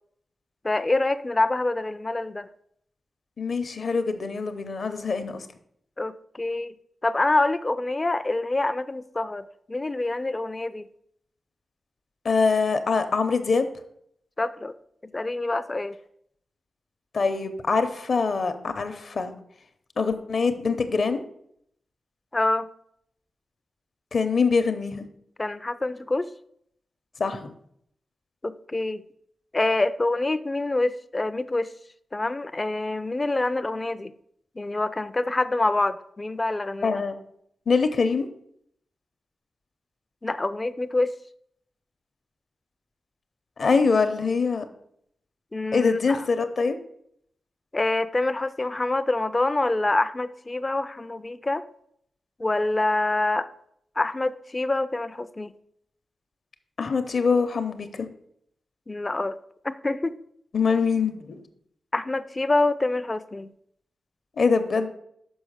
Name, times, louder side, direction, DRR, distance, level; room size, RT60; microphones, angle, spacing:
voice 1, 0.6-2.5 6.0-6.7 7.0-10.9 14.4-14.8 15.1-16.0 22.3-22.7 25.4-26.3 28.4-29.0 29.5-31.7 32.1-34.1 34.6-37.0 40.2-41.1 45.5-46.2 47.7-51.6 52.4-53.5 54.0-55.5 58.9-59.4 59.6-60.1 61.9-63.5, left 2 dB, 20° left, 14 dB, 0.3 m, -26 dB
voice 2, 3.4-5.5 12.2-13.7 17.1-19.3 20.0-21.2 24.1-25.1 27.2-27.5 36.8-37.1 37.7-38.3 43.6-44.6 45.7-46.8 56.8-58.1 60.5-61.4 64.4-64.9, left 4 dB, 50° left, 9 dB, 0.7 m, -24 dB
6.3 x 5.3 x 6.4 m, 0.70 s
wide cardioid pair, 175°, 0 cm